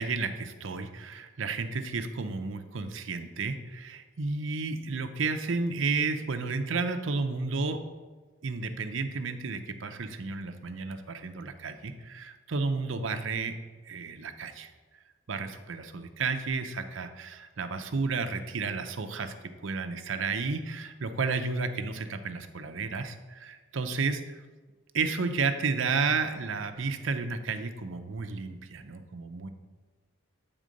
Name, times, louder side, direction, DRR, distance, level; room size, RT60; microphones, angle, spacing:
voice 1, 0.0-7.8 8.4-13.6 13.9-14.7 15.3-19.3 19.6-24.4 24.9-29.5, right 4 dB, 65° right, 7 dB, 0.6 m, -32 dB
8.9 x 3.7 x 5.2 m, 1.4 s
head